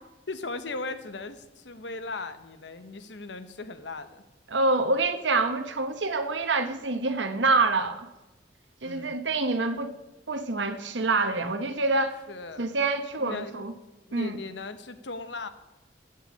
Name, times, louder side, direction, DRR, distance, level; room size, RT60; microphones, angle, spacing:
voice 1, 0.3-4.2 8.8-9.2 12.3-12.7 13.2-13.7 14.1-15.5, left 3 dB, 80° left, 11 dB, 1.1 m, -38 dB
voice 2, 4.5-8.1 8.8-9.9 10.3-12.2 12.6-13.7 14.1-14.4, right 3 dB, 90° right, 8 dB, 1.1 m, -26 dB
13.0 x 8.1 x 8.5 m, 1.0 s
head